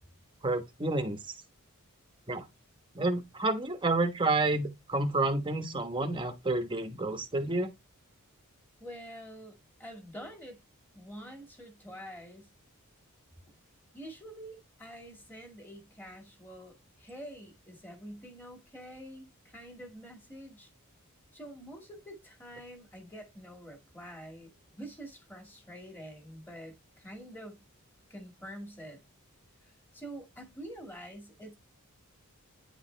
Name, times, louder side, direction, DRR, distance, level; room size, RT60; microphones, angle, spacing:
voice 1, 0.4-1.2 2.3-2.5 2.9-7.7, right 2 dB, 20° right, 1.1 m, -29 dB
voice 2, 8.8-10.6 10.9-12.5 13.9-20.7 21.3-27.6 28.1-29.0 29.9-31.5, equal, 10° left, 2.1 m, -47 dB
9.7 x 4.9 x 3.3 m
head